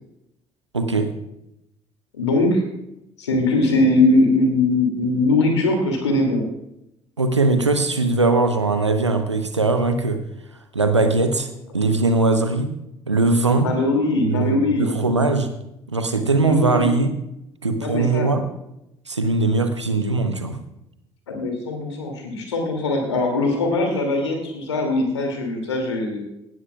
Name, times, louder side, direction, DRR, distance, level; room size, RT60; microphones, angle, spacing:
voice 1, 0.7-1.1 7.2-10.2 10.7-11.5 11.7-12.7 13.1-13.7 14.3-15.5 15.9-17.1 17.6-18.4 19.1-20.6, right 3 dB, 90° right, 8 dB, 0.9 m, -20 dB
voice 2, 2.1-2.6 3.2-6.4 13.6-14.9 16.4-16.9 17.8-18.4 21.3-26.2, left 2 dB, 80° left, 3 dB, 2.5 m, -21 dB
18.0 x 12.5 x 2.4 m, 0.85 s
figure-of-eight pair, 55°, 15 cm